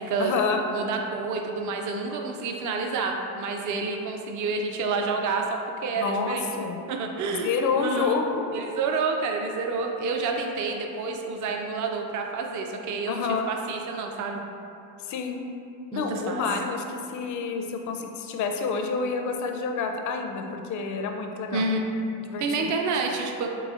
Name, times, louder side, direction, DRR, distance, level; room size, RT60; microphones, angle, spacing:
voice 1, 0.2-0.6 6.0-6.8 7.4-8.4 13.1-13.5 15.0-15.4 15.9-21.6 22.3-22.7, left 5 dB, 40° left, 4 dB, 0.4 m, -28 dB
voice 2, 0.7-6.5 6.9-7.5 7.8-8.1 8.5-13.2 13.5-14.4 15.9-16.5 21.5-21.9 22.4-23.5, right 4 dB, 40° right, 2 dB, 0.4 m, -29 dB
4.0 x 2.8 x 2.4 m, 2.7 s
hypercardioid pair, 60°, 50 cm